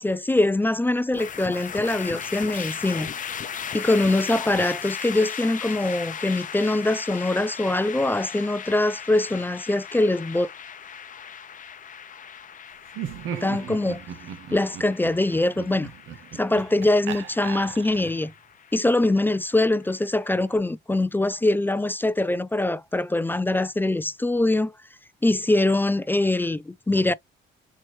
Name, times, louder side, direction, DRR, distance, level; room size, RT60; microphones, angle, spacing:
voice 1, 0.0-3.1 3.7-10.5 13.3-14.0 14.5-15.9 16.3-18.3 18.7-24.7 25.2-27.1, left 2 dB, 10° left, 0.3 m, -23 dB
sound 1, 1.1-20.4, left 8 dB, 40° left, 0.7 m, -37 dB
Laughter, 12.9-18.3, right 8 dB, 80° right, 0.9 m, -37 dB
4.5 x 2.9 x 3.0 m
cardioid pair, 90°, 20 cm